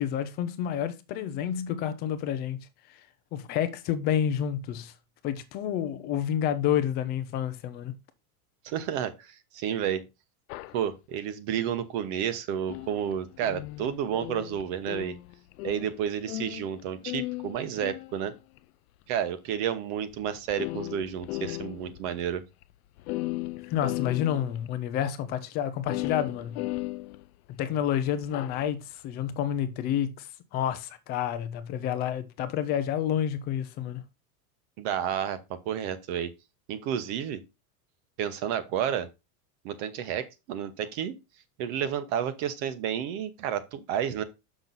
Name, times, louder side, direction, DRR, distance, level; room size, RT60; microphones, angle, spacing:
voice 1, 0.0-2.7 3.3-4.9 5.2-7.9 23.6-26.7 27.5-34.0, left 10 dB, 25° left, 0.4 m, -29 dB
voice 2, 8.6-10.1 10.7-15.2 15.6-18.3 19.1-22.4 34.8-36.3 36.7-37.4 38.2-39.1 39.6-41.1 41.6-44.2, right 9 dB, 45° right, 1.0 m, -31 dB
sound 1, 10.5-10.8 12.7-16.8 17.1-18.6 19.5-19.6 20.1-20.2 20.5-22.0 22.3-22.4 22.6-22.7 23.0-24.7 25.9-27.6 28.2-28.6, left 20 dB, 75° left, 0.6 m, -36 dB
6.9 x 6.1 x 4.0 m
supercardioid pair, 170°, 45 cm